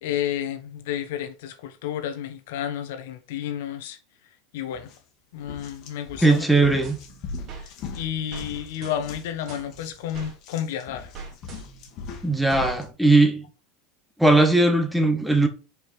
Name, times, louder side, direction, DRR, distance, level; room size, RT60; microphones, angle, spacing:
voice 1, 0.0-4.0 4.5-4.9 5.3-6.4 7.9-11.1, left 10 dB, 75° left, 1.1 m, -31 dB
sound 1, 4.7-5.0 5.4-12.9, left 4 dB, 50° left, 1.8 m, -40 dB
voice 2, 6.2-7.0 12.2-13.4 14.2-15.5, right 2 dB, ahead, 1.5 m, -19 dB
sound 2, 6.8-7.7 8.3-8.5 8.8-10.3 11.1-12.0, right 5 dB, 40° right, 2.5 m, -42 dB
5.3 x 5.0 x 4.6 m
supercardioid pair, 115°, 0 cm